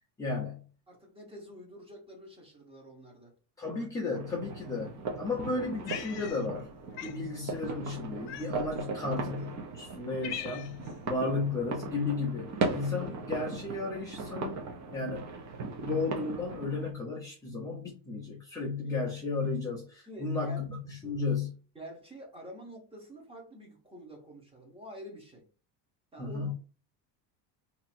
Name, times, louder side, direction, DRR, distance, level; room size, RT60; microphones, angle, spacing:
voice 1, 0.2-0.6 3.6-6.7 7.0-14.6 14.9-15.3 15.8-21.6 26.2-26.5, left 3 dB, 10° left, 0.4 m, -34 dB
voice 2, 0.9-3.4 18.6-19.0 20.1-20.6 21.7-25.4 26.1-26.5, equal, 10° right, 1.0 m, -48 dB
sound 1, 4.1-16.9, right 3 dB, 35° right, 0.7 m, -38 dB
Cat, 5.9-6.7 7.0-7.2 8.3-8.8 9.5-9.6 9.9-10.9, left 12 dB, 60° left, 0.5 m, -41 dB
2.8 x 2.7 x 4.2 m
cardioid pair, 155°, 47 cm